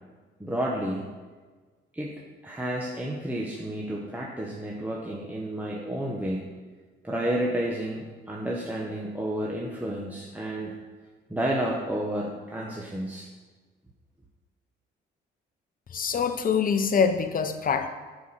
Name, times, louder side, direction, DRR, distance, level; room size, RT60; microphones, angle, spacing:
voice 1, 0.4-1.1 1.9-6.4 7.0-10.8 11.3-13.3, right 1 dB, 10° right, -3 dB, 1.2 m, -31 dB
voice 2, 15.9-17.9, left 6 dB, 45° left, 8 dB, 0.9 m, -24 dB
10.5 x 4.8 x 5.7 m, 1.4 s
cardioid pair, 90°, 20 cm